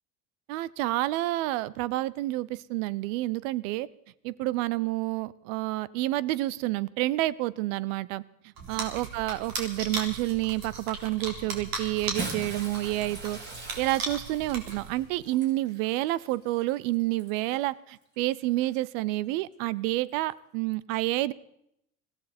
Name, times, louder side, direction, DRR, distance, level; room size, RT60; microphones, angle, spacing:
voice 1, 0.5-3.9 4.2-8.2 8.7-13.4 13.8-21.3, right 17 dB, 75° right, 21 dB, 0.7 m, -29 dB
sound 1, 8.6-15.2, right 3 dB, 60° right, 3.8 m, -37 dB
Bathtub (filling or washing) / Splash splatter, 11.9-17.6 18.5-18.7 20.1-20.2, right 2 dB, 25° right, 5.3 m, -42 dB
21.0 x 15.0 x 4.3 m, 0.77 s
hypercardioid pair, 85°, 39 cm